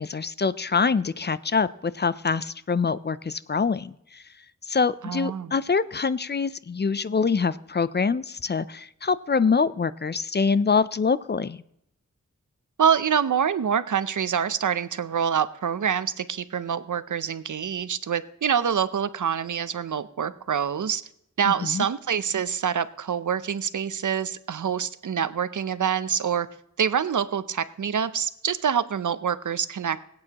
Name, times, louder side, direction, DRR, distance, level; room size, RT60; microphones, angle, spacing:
voice 1, 0.0-4.2 4.7-11.6 21.5-21.9, left 5 dB, 35° left, 16 dB, 0.4 m, -25 dB
voice 2, 5.0-5.5 12.8-21.0 21.4-26.5 26.8-30.0, right 8 dB, 85° right, 14 dB, 0.6 m, -26 dB
22.0 x 8.7 x 2.9 m, 0.76 s
wide cardioid pair, 70°, 30 cm